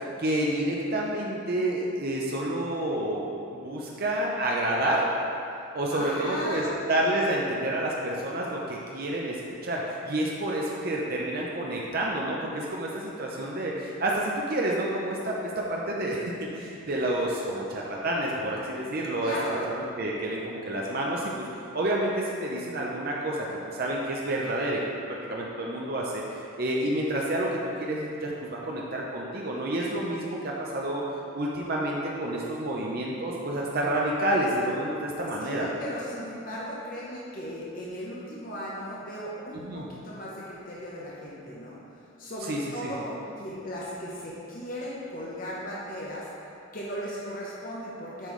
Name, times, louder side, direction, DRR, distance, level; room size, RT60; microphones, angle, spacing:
voice 1, 0.2-3.3 3.5-5.1 5.7-6.6 6.9-9.4 9.6-19.3 19.7-21.5 21.7-23.5 23.8-24.8 25.1-26.2 26.6-27.5 27.8-31.0 31.3-35.7 39.5-39.9 42.4-42.9, right 1 dB, 45° right, -3 dB, 0.6 m, -29 dB
voice 2, 5.9-6.8 19.2-19.7 35.4-41.8 42.2-46.3 46.7-48.3, equal, 40° left, -6 dB, 0.9 m, -36 dB
7.5 x 5.3 x 3.2 m, 2.6 s
head